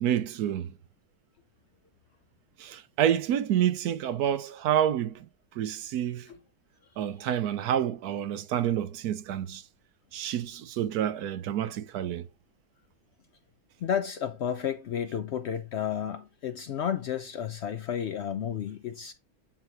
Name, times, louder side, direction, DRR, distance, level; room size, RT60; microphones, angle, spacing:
voice 1, 0.0-0.7 2.6-5.1 5.6-6.3 7.0-9.6 10.1-12.3, right 10 dB, 90° right, 1.2 m, -28 dB
voice 2, 13.8-19.1, left 8 dB, 70° left, 0.6 m, -32 dB
8.9 x 3.0 x 4.6 m
omnidirectional pair, 1.6 m